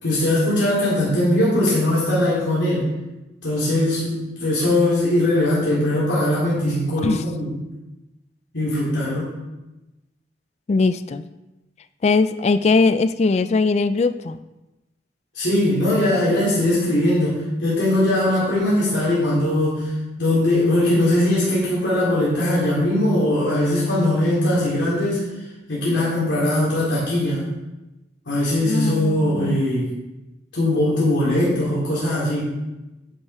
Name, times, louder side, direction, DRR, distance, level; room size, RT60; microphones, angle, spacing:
voice 1, 0.0-2.9 3.4-7.6 8.5-9.3 15.3-19.9 20.2-25.3 25.7-27.4 28.2-29.9 30.5-32.5, left 1 dB, 80° left, -8 dB, 3.1 m, -20 dB
voice 2, 10.7-11.2 12.0-14.4 28.6-29.6, left 3 dB, 35° left, 12 dB, 0.3 m, -20 dB
10.0 x 5.5 x 4.8 m, 1.0 s
head